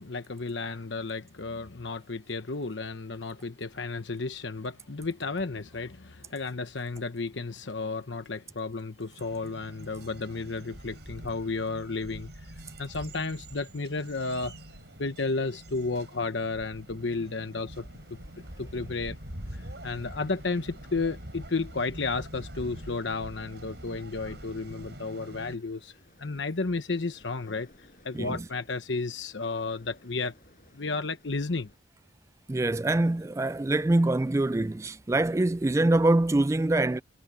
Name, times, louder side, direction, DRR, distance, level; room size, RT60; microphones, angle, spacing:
voice 1, 0.0-12.3 12.8-14.6 15.0-18.2 18.6-19.2 19.5-30.3 30.7-31.7, left 3 dB, 80° left, 1.0 m, -33 dB
sound 1, 9.2-25.6, right 1 dB, 65° right, 6.2 m, -45 dB
Waves surf, 17.0-31.8, left 1 dB, 45° left, 7.2 m, -60 dB
voice 2, 32.5-37.0, right 2 dB, 15° right, 0.3 m, -24 dB
head